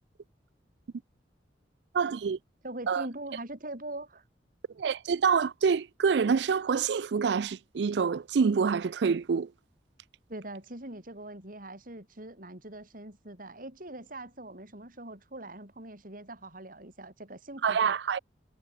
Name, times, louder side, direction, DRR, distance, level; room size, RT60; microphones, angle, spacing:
voice 1, 1.9-2.4 2.9-3.1 4.8-9.5 17.6-18.2, right 6 dB, 70° right, 0.4 m, -26 dB
voice 2, 2.6-4.2 10.3-18.0, right 1 dB, 50° right, 5.3 m, -42 dB
head